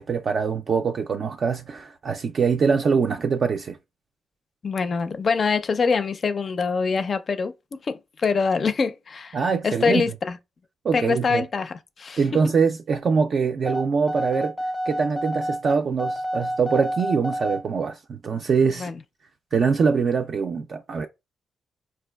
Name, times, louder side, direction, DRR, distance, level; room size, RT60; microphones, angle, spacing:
voice 1, 0.0-3.8 9.3-10.0 10.8-11.4 12.2-14.5 14.9-18.9 19.5-21.1, right 5 dB, 55° right, 0.3 m, -23 dB
voice 2, 4.6-9.4 9.6-10.4 10.9-12.4 18.8-19.0, left 5 dB, 50° left, 0.4 m, -24 dB
sound 1, 13.7-17.6, equal, ahead, 0.6 m, -29 dB
4.4 x 2.3 x 2.2 m
cardioid pair, 80°, 0 cm